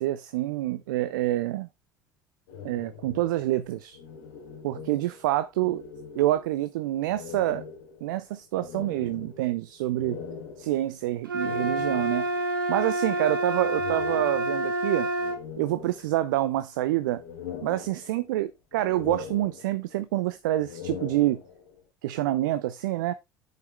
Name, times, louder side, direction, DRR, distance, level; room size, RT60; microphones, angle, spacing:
voice 1, 0.0-1.7 2.6-4.0 4.6-5.8 6.1-7.6 8.0-10.2 10.6-12.3 12.7-15.1 15.6-17.2 17.6-21.4 22.0-23.1, right 15 dB, 65° right, 0.6 m, -27 dB
sound 1, 2.5-5.3 5.5-6.7 7.1-12.5 13.5-14.8 15.2-16.5 16.9-18.4 18.7-20.0 20.5-21.8, left 7 dB, 65° left, 2.9 m, -42 dB
sound 2, 11.3-15.4, right 1 dB, 80° right, 1.4 m, -28 dB
8.4 x 6.6 x 3.3 m
figure-of-eight pair, 70°, 11 cm